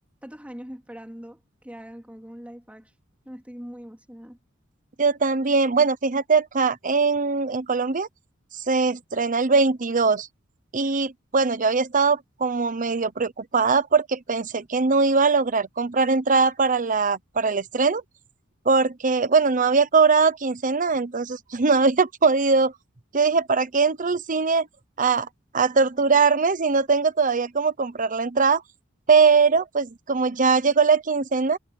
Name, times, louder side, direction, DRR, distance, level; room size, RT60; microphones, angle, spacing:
voice 1, 0.2-1.4 1.6-2.9 3.3-4.4, equal, 5° right, 3.5 m, -41 dB
voice 2, 5.0-8.1 8.5-10.3 10.7-18.0 18.6-22.7 23.1-24.7 25.0-25.3 25.5-28.6 29.1-31.6, right 4 dB, 40° right, 0.9 m, -21 dB
head